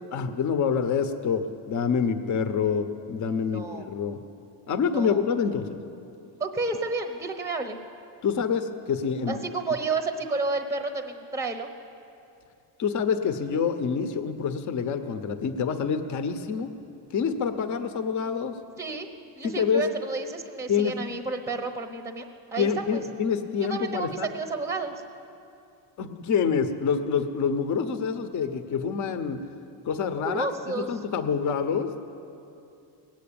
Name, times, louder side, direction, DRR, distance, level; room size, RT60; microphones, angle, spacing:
voice 1, 0.1-4.2 4.7-5.8 8.2-9.4 12.8-16.7 17.1-18.6 19.4-19.8 20.7-20.9 22.6-24.3 26.0-29.4 29.9-32.0, left 6 dB, 40° left, 9 dB, 0.9 m, -27 dB
voice 2, 3.5-3.9 4.9-5.2 6.4-7.8 9.3-11.7 18.8-19.1 19.4-22.2 22.5-23.0 23.7-24.9 30.1-30.9, right 3 dB, 5° right, 7 dB, 0.8 m, -31 dB
18.5 x 7.9 x 8.7 m, 2.7 s
cardioid pair, 135°, 45 cm